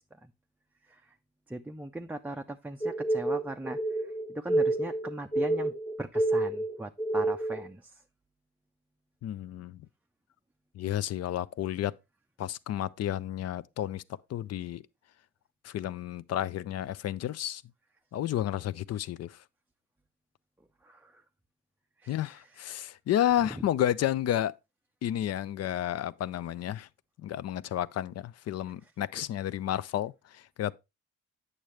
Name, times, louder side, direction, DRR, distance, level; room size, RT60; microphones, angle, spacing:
voice 1, 1.5-3.8 4.3-5.7 6.0-7.9 20.8-21.1 22.0-22.2 23.5-23.6, right 1 dB, 5° right, 0.4 m, -39 dB
sound 1, 2.8-7.6, right 2 dB, 25° left, 1.2 m, -29 dB
voice 2, 9.2-9.8 10.7-11.9 12.4-14.0 14.3-14.8 15.6-17.6 18.1-19.3 22.1-24.5 25.0-26.9 27.2-30.7, left 11 dB, 55° left, 0.5 m, -31 dB
8.7 x 6.5 x 3.2 m
cardioid pair, 90°, 30 cm